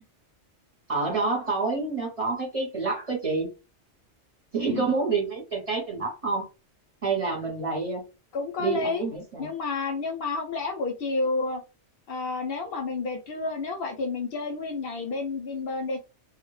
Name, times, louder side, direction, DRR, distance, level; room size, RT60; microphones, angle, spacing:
voice 1, 0.9-3.5 4.5-6.5 7.0-8.0 8.6-9.5, right 4 dB, 35° right, -1 dB, 0.7 m, -28 dB
voice 2, 8.3-9.1 9.4-11.6 12.1-16.0, left 3 dB, 65° left, 4 dB, 0.7 m, -30 dB
2.1 x 2.1 x 3.1 m, 0.29 s
omnidirectional pair, 1.2 m